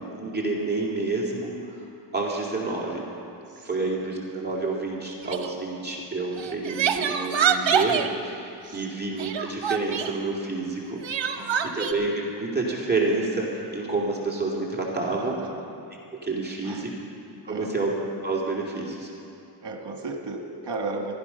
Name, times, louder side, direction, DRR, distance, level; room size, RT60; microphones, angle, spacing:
voice 1, 0.2-1.8 2.1-3.0 3.6-11.0 11.3-15.4 16.1-16.9 17.4-17.9 18.2-19.1, right 3 dB, 20° right, -3 dB, 2.5 m, -29 dB
voice 2, 3.6-4.0 8.6-9.0 11.4-11.8 15.1-15.6 16.6-16.9 17.5-17.7 19.6-21.2, right 3 dB, 65° right, 2 dB, 1.9 m, -35 dB
Crying sobbing, 5.2-5.5 6.4-8.1 9.2-10.1 11.0-11.9, right 7 dB, 90° right, 0.9 m, -25 dB
15.0 x 13.0 x 5.7 m, 2.8 s
wide cardioid pair, 85°, 44 cm